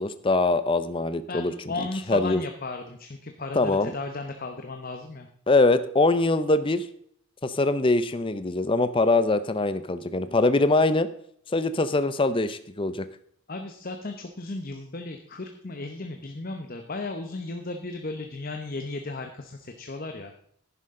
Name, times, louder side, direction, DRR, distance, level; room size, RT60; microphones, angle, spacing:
voice 1, 0.0-1.5 2.1-2.4 3.6-3.9 5.5-6.9 7.4-11.1 11.5-13.1, left 2 dB, 25° left, 12 dB, 0.5 m, -23 dB
voice 2, 1.3-5.3 10.1-10.4 13.5-20.3, left 3 dB, 40° left, 5 dB, 0.9 m, -35 dB
11.0 x 10.5 x 3.7 m, 0.66 s
head